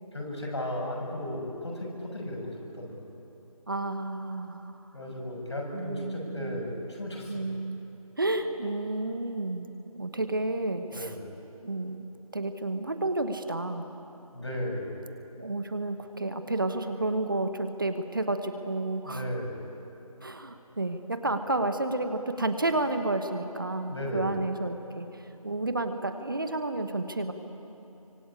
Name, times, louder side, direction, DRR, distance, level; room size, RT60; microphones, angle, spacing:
voice 1, 0.1-3.0 4.9-7.5 10.9-11.2 14.3-15.0 19.0-19.6 23.9-24.3, left 1 dB, 50° left, -1 dB, 6.9 m, -35 dB
voice 2, 3.7-4.8 5.7-6.6 7.3-7.8 8.2-9.7 9.9-11.1 11.6-12.0 12.3-13.8 15.4-19.2 20.2-27.3, right 2 dB, 35° right, 8 dB, 1.1 m, -31 dB
27.5 x 25.0 x 8.6 m, 3.0 s
figure-of-eight pair, 170°, 19 cm